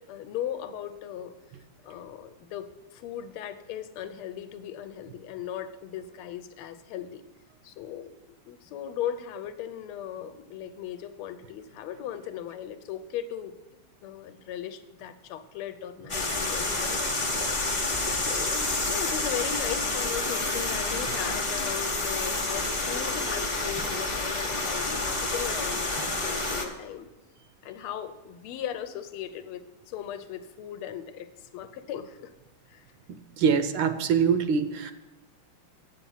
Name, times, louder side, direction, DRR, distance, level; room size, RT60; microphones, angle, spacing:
voice 1, 0.1-1.3 1.8-7.2 7.6-8.1 8.5-17.2 18.2-27.1 27.6-29.6 29.9-32.3 32.7-32.8, left 10 dB, 90° left, 11 dB, 1.5 m, -37 dB
sound 1, 16.1-26.6, left 2 dB, 35° left, 0.5 m, -29 dB
voice 2, 33.4-34.9, right 6 dB, 75° right, 9 dB, 1.2 m, -24 dB
8.1 x 5.8 x 7.1 m, 1.1 s
omnidirectional pair, 2.3 m